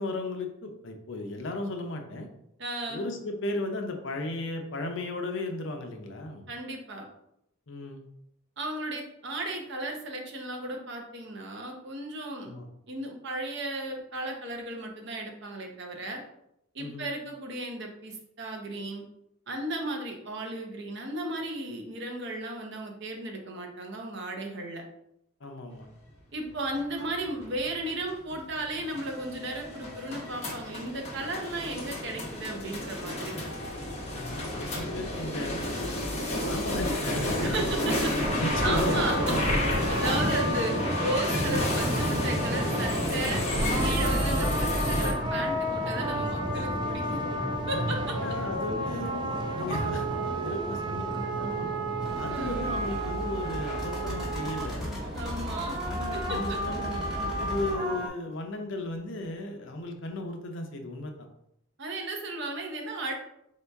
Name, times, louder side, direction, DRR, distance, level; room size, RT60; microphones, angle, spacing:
voice 1, 0.0-2.3 2.9-6.5 7.7-8.0 12.4-12.7 16.8-17.1 25.4-25.9 34.1-35.8 36.4-37.7 38.3-39.6 42.4-42.7 47.7-50.1 50.4-51.0 51.4-51.7 52.1-55.0 55.9-61.1, left 2 dB, 60° left, 4 dB, 0.6 m, -35 dB
voice 2, 2.6-3.1 6.5-7.1 8.6-12.5 12.8-16.2 16.7-19.0 19.5-24.8 26.3-33.4 37.4-37.8 38.6-39.1 39.9-40.7 41.0-43.4 43.8-47.2 47.7-48.0 50.3-50.7 52.3-52.7 55.2-55.8 56.1-56.6 61.8-63.1, right 1 dB, 55° right, 2 dB, 0.8 m, -35 dB
sound 1, 26.5-45.1, equal, 30° left, 0.9 m, -30 dB
sound 2, 38.2-58.1, right 1 dB, 20° right, 0.5 m, -32 dB
sound 3, 52.0-57.7, equal, ahead, 1.2 m, -37 dB
4.4 x 2.8 x 3.4 m, 0.79 s
head